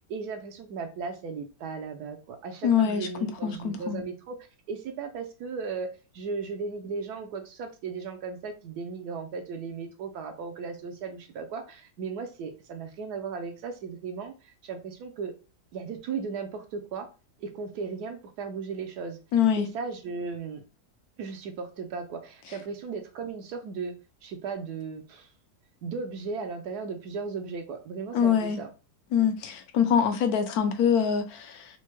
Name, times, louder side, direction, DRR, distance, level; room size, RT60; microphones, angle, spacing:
voice 1, 0.1-4.4 4.7-15.3 15.7-17.1 17.4-19.2 19.6-20.6 21.2-24.0 24.2-25.3 25.8-28.7, right 5 dB, 75° right, 1.1 m, -36 dB
voice 2, 2.6-3.1 3.4-4.0 19.3-19.7 28.1-28.6 29.1-31.7, left 8 dB, 70° left, 1.1 m, -24 dB
4.3 x 2.1 x 3.0 m
omnidirectional pair, 1.8 m